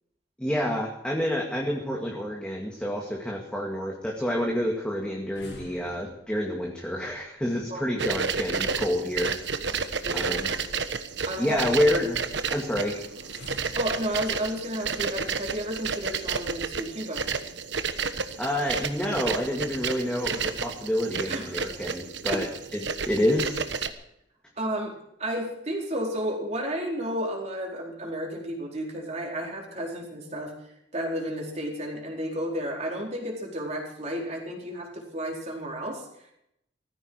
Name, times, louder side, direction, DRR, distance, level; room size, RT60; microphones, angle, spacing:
voice 1, 0.4-9.3 10.1-10.5 11.4-12.2 12.5-12.9 18.4-22.5 22.7-23.6, left 1 dB, 5° left, -1 dB, 2.2 m, -28 dB
sound 1, 4.0-16.5 17.0-17.1 17.4-17.6 18.6-19.2 19.4-19.5 19.9-20.0 20.6-20.7 21.0-21.3 21.7-22.4, left 1 dB, 75° left, 6.6 m, -51 dB
sound 2, 8.0-23.9, right 5 dB, 70° right, 1.3 m, -31 dB
voice 2, 10.0-10.6 11.2-11.6 13.7-17.3 21.3-21.5 22.3-22.4 24.6-24.9 25.2-36.3, equal, 35° right, -1 dB, 4.6 m, -32 dB
19.0 x 15.0 x 4.8 m, 0.77 s
head